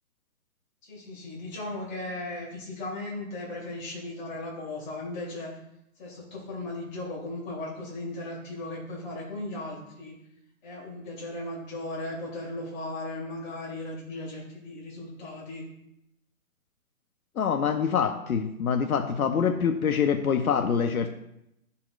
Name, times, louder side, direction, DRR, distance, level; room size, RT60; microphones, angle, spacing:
voice 1, 0.8-5.6 6.0-10.2 10.6-15.7, left 2 dB, 35° left, -4 dB, 2.7 m, -37 dB
voice 2, 17.4-21.1, left 7 dB, 90° left, 6 dB, 0.7 m, -25 dB
12.0 x 4.2 x 2.4 m, 0.82 s
hypercardioid pair, 155°, 41 cm